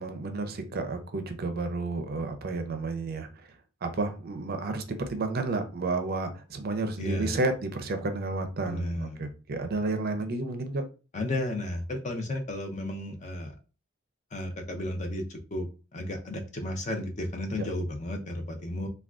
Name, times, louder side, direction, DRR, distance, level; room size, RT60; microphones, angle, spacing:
voice 1, 0.0-3.5 3.8-10.8, right 3 dB, 50° right, 0.4 m, -31 dB
voice 2, 7.0-7.4 8.6-9.2 11.1-13.5 14.3-18.9, left 1 dB, 35° left, 0.5 m, -33 dB
3.5 x 2.2 x 2.4 m
head